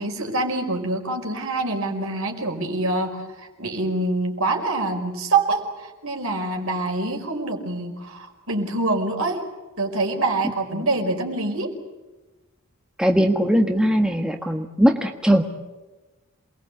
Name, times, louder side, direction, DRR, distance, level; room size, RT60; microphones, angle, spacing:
voice 1, 0.0-9.4 9.8-11.7, right 2 dB, 65° right, 3 dB, 5.1 m, -25 dB
voice 2, 13.0-15.4, equal, 5° right, 4 dB, 1.5 m, -20 dB
28.0 x 21.0 x 8.4 m, 1.2 s
head